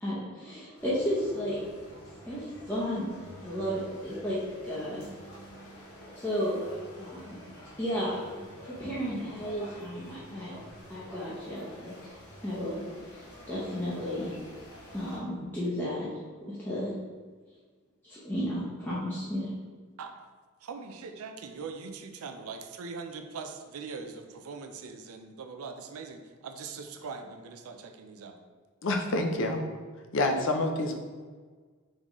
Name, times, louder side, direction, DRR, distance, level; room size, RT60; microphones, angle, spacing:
voice 1, 0.0-1.6 2.3-3.1 3.4-5.0 6.1-6.7 7.0-7.4 7.8-8.2 8.6-10.5 10.9-12.1 12.4-12.9 13.1-14.4 14.9-16.1 16.5-16.9 18.0-19.5, equal, 10° left, -10 dB, 0.7 m, -33 dB
sound 1, 0.8-15.2, equal, 80° left, 1.0 m, -48 dB
voice 2, 20.6-28.4, right 4 dB, 80° right, 6 dB, 0.4 m, -41 dB
voice 3, 28.8-29.6 30.1-30.9, left 2 dB, 60° left, 4 dB, 0.5 m, -27 dB
3.8 x 3.7 x 3.0 m, 1.5 s
head